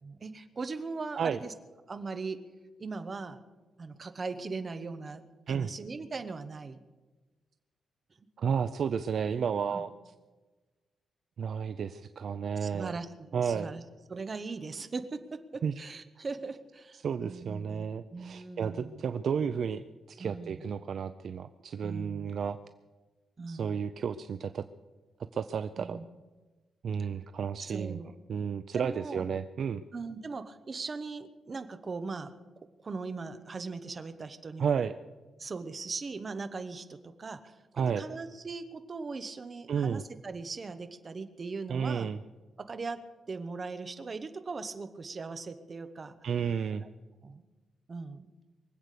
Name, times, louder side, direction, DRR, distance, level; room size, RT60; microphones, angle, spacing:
voice 1, 0.0-1.5 1.9-2.4 2.8-3.4 3.8-6.8 9.7-9.8 12.6-13.8 14.1-19.0 20.2-20.7 21.8-22.3 23.4-23.9 25.8-26.1 27.6-28.1 28.8-29.2 29.9-32.3 32.8-34.8 35.4-37.6 38.0-42.1 42.6-43.0 43.3-46.2 46.8-46.9 47.2-47.4 47.9-48.3, right 4 dB, 30° right, 9 dB, 0.9 m, -39 dB
voice 2, 8.4-10.1 11.4-12.9 13.3-13.7 15.6-15.7 16.9-22.6 23.5-24.7 25.3-26.0 26.8-28.0 28.3-29.8 34.6-34.9 37.8-38.1 39.7-40.0 41.7-42.2 46.2-46.9, right 7 dB, 50° right, 11 dB, 0.4 m, -32 dB
23.5 x 8.1 x 6.7 m, 1.2 s
wide cardioid pair, 170°, 0 cm